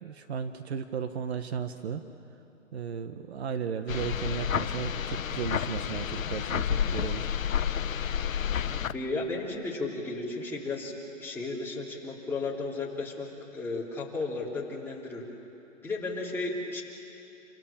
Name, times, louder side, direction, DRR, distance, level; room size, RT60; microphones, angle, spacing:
voice 1, 0.0-2.0 2.7-7.3 8.7-8.8, right 7 dB, 55° right, 9 dB, 1.3 m, -35 dB
sound 1, 3.9-8.9, left 8 dB, 85° left, 1.0 m, -30 dB
voice 2, 8.5-13.3 13.5-15.2 15.8-16.8, left 3 dB, 5° left, -5 dB, 3.5 m, -34 dB
28.5 x 26.0 x 7.4 m, 2.9 s
hypercardioid pair, 150°, 39 cm